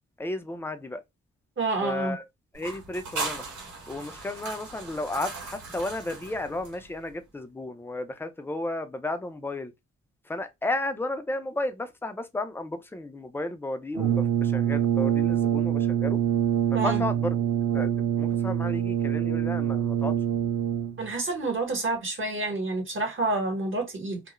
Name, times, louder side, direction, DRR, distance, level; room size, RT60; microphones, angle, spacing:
voice 1, 0.2-1.0 1.8-2.2 2.5-3.4 3.9-9.7 10.3-16.2 16.7-17.4 17.7-20.1, left 2 dB, 10° left, 0.4 m, -33 dB
voice 2, 1.6-2.2 16.7-17.0 21.0-24.2, right 3 dB, 45° right, 1.1 m, -28 dB
sound 1, 2.5-7.1, right 3 dB, 85° right, 1.1 m, -38 dB
Brass instrument, 13.9-21.1, right 9 dB, 65° right, 0.6 m, -25 dB
2.3 x 2.0 x 2.9 m
wide cardioid pair, 110°, 30 cm